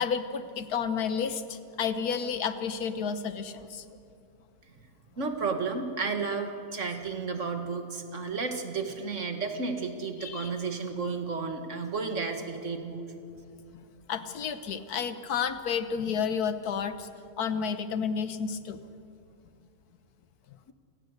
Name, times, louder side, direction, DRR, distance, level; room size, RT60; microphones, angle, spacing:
voice 1, 0.0-3.8 10.2-10.5 14.1-17.1 17.4-18.8, left 6 dB, 90° left, 11 dB, 1.6 m, -31 dB
voice 2, 5.2-13.0, right 4 dB, 55° right, 5 dB, 2.1 m, -32 dB
28.5 x 19.0 x 6.6 m, 2.7 s
omnidirectional pair, 1.6 m